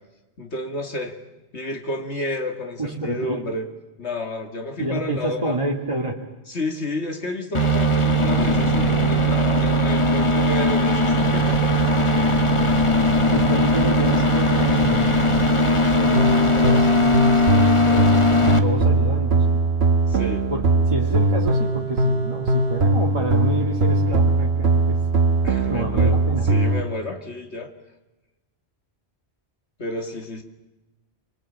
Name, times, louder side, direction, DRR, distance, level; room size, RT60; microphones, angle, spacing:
voice 1, 0.4-1.2 1.5-3.7 4.0-5.6 6.5-11.9 14.5-14.6 20.1-20.4 25.4-26.2 26.4-27.7 29.8-30.4, left 1 dB, 90° left, 5 dB, 2.7 m, -31 dB
voice 2, 2.8-3.4 4.8-6.2 13.3-15.2 15.6-19.6 20.5-25.0 25.7-26.5, right 2 dB, 30° right, -1 dB, 2.3 m, -28 dB
sound 1, 7.5-18.6, left 1 dB, 30° left, 1.5 m, -19 dB
sound 2, 16.1-26.8, right 2 dB, 70° right, 1.4 m, -20 dB
26.0 x 24.5 x 9.0 m, 1.1 s
omnidirectional pair, 1.1 m